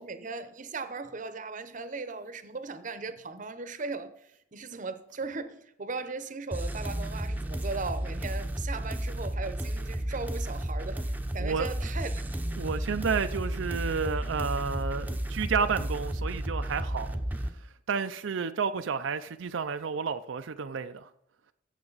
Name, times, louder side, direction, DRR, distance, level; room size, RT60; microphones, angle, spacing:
voice 1, 0.0-4.1 4.5-12.6, right 4 dB, 40° right, 0.8 m, -38 dB
sound 1, 6.5-17.5, right 1 dB, 10° right, 0.7 m, -33 dB
voice 2, 12.6-17.2 17.9-21.1, right 5 dB, 80° right, 0.5 m, -31 dB
14.5 x 7.7 x 4.0 m
head